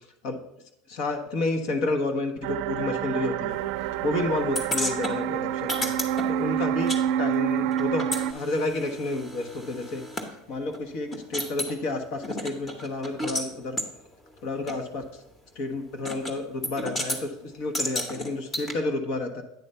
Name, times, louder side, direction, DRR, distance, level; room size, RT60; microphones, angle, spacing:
voice 1, 0.9-3.7 4.0-5.9 6.3-6.9 7.2-10.0 10.5-13.8 14.4-15.2 15.5-19.4, left 2 dB, 60° left, 5 dB, 1.1 m, -30 dB
sound 1, 2.4-8.3, right 10 dB, 70° right, 0.4 m, -27 dB
sound 2, 4.6-7.0 7.3-10.3 10.7-10.8 11.1-11.8 12.2-13.5 13.8-13.9 14.7-14.8 16.1-16.4 16.6-17.2 17.7-18.7, left 1 dB, 20° left, 1.0 m, -32 dB
9.2 x 3.3 x 5.4 m, 0.81 s
supercardioid pair, 125°, 0 cm